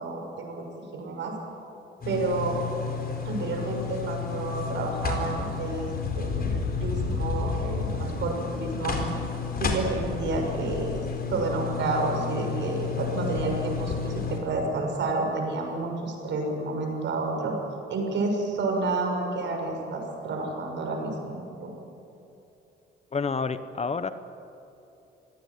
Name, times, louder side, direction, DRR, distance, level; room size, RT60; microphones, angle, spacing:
voice 1, 0.0-1.4 2.0-2.6 3.2-9.0 9.6-17.5 17.9-21.7, right 3 dB, 65° right, 2 dB, 6.5 m, -30 dB
sound 1, 2.0-14.4, left 5 dB, 50° left, 4.6 m, -31 dB
voice 2, 23.1-24.1, left 5 dB, 35° left, 12 dB, 1.2 m, -28 dB
25.5 x 18.0 x 9.7 m, 2.8 s
cardioid pair, 90°, 20 cm